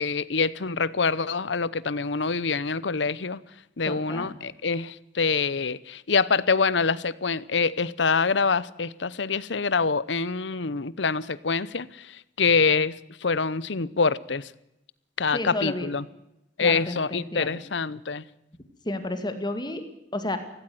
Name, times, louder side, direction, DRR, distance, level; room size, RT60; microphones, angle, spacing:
voice 1, 0.0-3.4 3.8-13.0 13.2-14.5 15.2-16.0 16.6-18.2, left 4 dB, 75° left, 0.8 m, -25 dB
voice 2, 3.9-4.4 15.3-15.9 16.6-17.6 18.8-19.8 20.1-20.4, left 1 dB, 25° left, 2.1 m, -31 dB
17.0 x 16.5 x 9.3 m
head